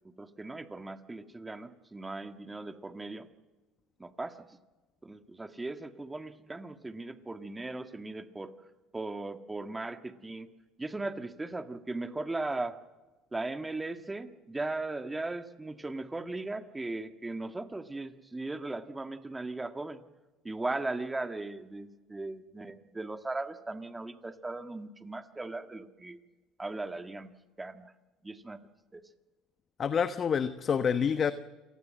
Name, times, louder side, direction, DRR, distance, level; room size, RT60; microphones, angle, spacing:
voice 1, 0.2-3.3 4.0-4.4 5.0-8.5 8.9-10.5 10.8-12.8 13.3-20.0 20.4-26.2 26.6-27.3 27.6-27.9 28.2-28.6 28.9-29.0, right 2 dB, 15° right, 9 dB, 1.8 m, -38 dB
voice 2, 29.8-31.3, left 7 dB, 40° left, 12 dB, 1.2 m, -27 dB
28.0 x 19.5 x 7.7 m, 1.2 s
supercardioid pair, 95°, 0 cm